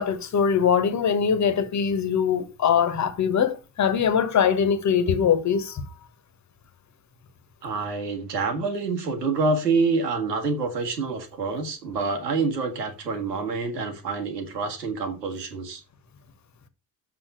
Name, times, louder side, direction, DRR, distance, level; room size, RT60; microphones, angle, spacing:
voice 1, 0.0-5.8, left 7 dB, 35° left, 1.6 m, -22 dB
voice 2, 7.6-15.8, right 4 dB, 80° right, 2.0 m, -27 dB
7.5 x 5.7 x 6.8 m
figure-of-eight pair, 50°, 48 cm